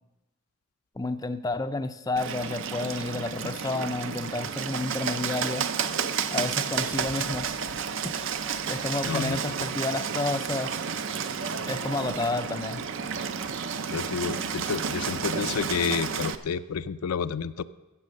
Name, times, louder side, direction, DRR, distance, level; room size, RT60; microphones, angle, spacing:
voice 1, 1.0-5.7 6.3-7.5 7.9-8.1 8.7-10.8 11.7-12.8, left 2 dB, 15° left, 9 dB, 0.4 m, -30 dB
Bird, 2.2-16.4, right 6 dB, 60° right, 0.5 m, -31 dB
voice 2, 9.0-9.4 13.9-17.6, left 6 dB, 90° left, 12 dB, 0.5 m, -30 dB
14.5 x 7.5 x 6.4 m, 1.1 s
head